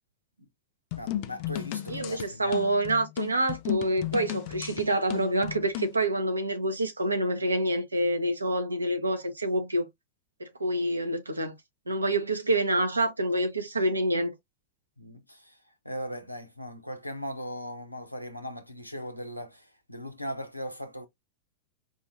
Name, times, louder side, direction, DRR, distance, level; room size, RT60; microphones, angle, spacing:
sound 1, 0.9-6.0, left 13 dB, 45° left, 0.4 m, -35 dB
voice 1, 1.0-2.8 11.9-12.1 15.0-15.6 15.8-21.1, equal, 90° left, 0.8 m, -39 dB
voice 2, 1.9-9.9 10.4-11.5 11.9-14.3, right 1 dB, 80° right, 1.0 m, -27 dB
4.8 x 2.6 x 2.7 m
figure-of-eight pair, 90°, 0 cm